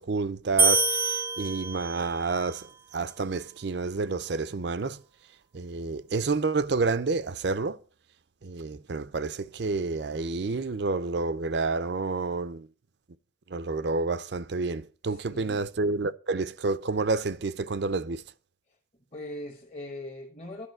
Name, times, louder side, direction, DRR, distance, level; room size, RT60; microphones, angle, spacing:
voice 1, 0.0-5.0 5.5-7.8 8.4-12.7 13.5-18.2, right 3 dB, 60° right, 0.5 m, -29 dB
sound 1, 0.6-2.2, right 3 dB, 10° right, 0.6 m, -25 dB
voice 2, 15.0-15.7 19.1-20.7, left 1 dB, 35° left, 1.2 m, -40 dB
11.5 x 5.1 x 7.8 m
head